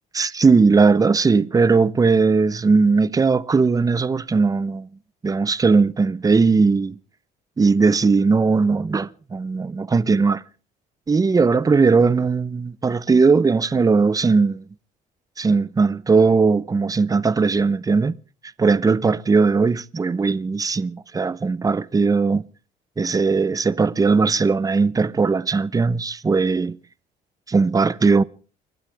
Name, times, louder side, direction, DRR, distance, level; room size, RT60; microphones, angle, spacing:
voice 1, 0.1-4.9 5.2-7.0 7.6-10.4 11.1-14.6 15.4-18.2 18.6-22.4 23.0-26.8 27.5-28.2, right 4 dB, 20° right, 0.8 m, -18 dB
29.5 x 12.0 x 3.5 m
cardioid pair, 110°, 17 cm